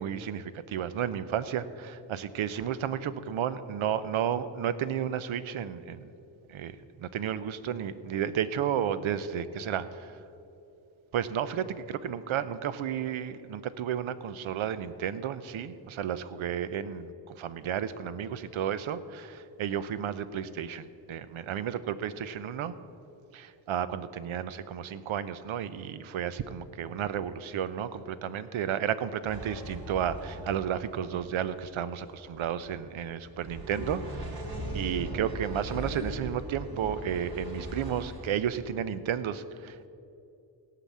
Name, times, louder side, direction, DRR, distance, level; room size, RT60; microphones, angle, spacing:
voice 1, 0.0-6.1 6.5-10.1 11.1-22.7 23.3-34.4 34.7-39.9, right 9 dB, 75° right, 14 dB, 0.7 m, -32 dB
sound 1, 29.2-38.3, right 1 dB, 50° right, 2.7 m, -39 dB
17.0 x 5.9 x 8.4 m, 2.7 s
cardioid pair, 85°, 48 cm